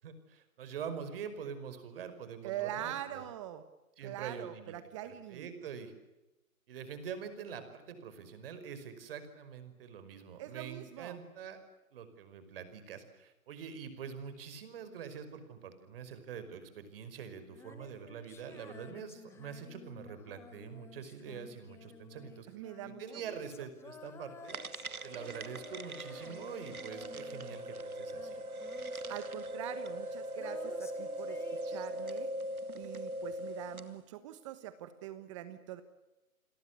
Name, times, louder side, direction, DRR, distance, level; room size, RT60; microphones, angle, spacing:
voice 1, 0.0-3.2 4.0-4.7 5.0-5.9 6.7-11.6 11.9-22.5 22.8-24.6 25.0-28.4, right 7 dB, 40° right, 10 dB, 5.3 m, -45 dB
voice 2, 2.4-3.7 4.0-5.5 10.4-11.2 22.5-23.0 23.3-23.4 29.1-32.3 32.8-35.8, right 12 dB, 20° right, 12 dB, 1.2 m, -43 dB
Female singing, 17.5-27.8 28.1-32.5, left 6 dB, 5° left, 1.2 m, -54 dB
sound 1, 24.5-34.0, right 1 dB, 85° right, 2.0 m, -40 dB
29.5 x 22.0 x 8.2 m, 1.0 s
hypercardioid pair, 150°, 42 cm